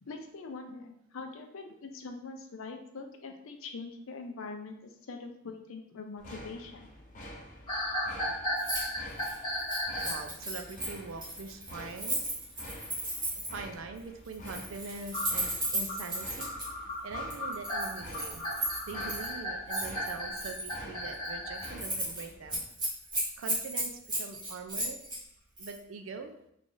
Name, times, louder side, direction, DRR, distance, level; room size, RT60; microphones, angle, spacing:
voice 1, 0.0-6.9, left 4 dB, 80° left, 5 dB, 0.5 m, -43 dB
sound 1, 6.2-22.6, equal, 40° left, 0.7 m, -49 dB
sound 2, 7.7-10.3 15.1-21.7, left 1 dB, 20° left, 1.1 m, -35 dB
Keys jangling, 8.6-8.8 9.1-13.6 14.3-16.7 17.3-19.3 19.7-20.8 21.1-21.3 21.6-22.2 22.5-25.2 25.6-25.8, right 1 dB, 20° right, 1.2 m, -35 dB
voice 2, 10.0-12.2 13.5-16.5 17.0-18.5 18.9-22.6 23.4-25.0 25.6-26.3, right 4 dB, 75° right, 6 dB, 0.4 m, -43 dB
3.2 x 2.5 x 3.8 m, 0.75 s
head